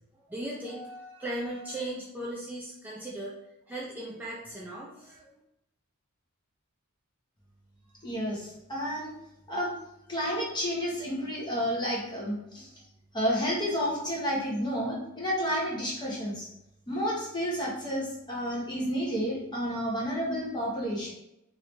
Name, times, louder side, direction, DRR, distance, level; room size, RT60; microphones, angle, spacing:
voice 1, 0.3-3.3 3.7-5.2, right 1 dB, 10° right, -5 dB, 0.4 m, -37 dB
voice 2, 8.0-9.1 9.5-9.7 10.1-12.7 13.1-16.5 16.9-21.1, equal, 20° left, -4 dB, 1.0 m, -30 dB
3.0 x 2.8 x 3.2 m, 0.84 s
head